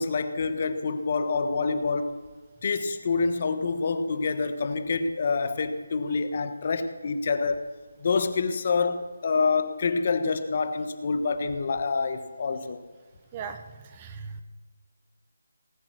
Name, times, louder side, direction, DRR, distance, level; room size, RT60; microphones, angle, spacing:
voice 1, 0.0-2.2 2.6-7.7 8.0-12.8, left 4 dB, 40° left, 9 dB, 1.2 m, -27 dB
voice 2, 14.0-14.4, right 6 dB, 20° right, 8 dB, 0.9 m, -37 dB
19.0 x 8.8 x 6.3 m, 1.4 s
figure-of-eight pair, 165°, 0 cm